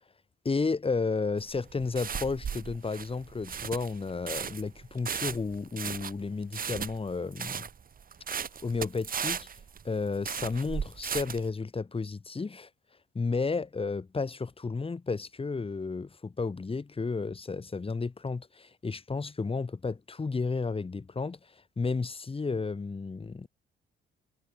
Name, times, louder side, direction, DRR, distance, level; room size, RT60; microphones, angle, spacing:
voice 1, 0.4-7.7 8.3-9.5 9.8-12.7 13.1-23.5, left 4 dB, 30° left, 5.4 m, -32 dB
sound 1, 1.4-11.5, right 7 dB, 45° right, 2.3 m, -36 dB
cardioid pair, 90°, 20 cm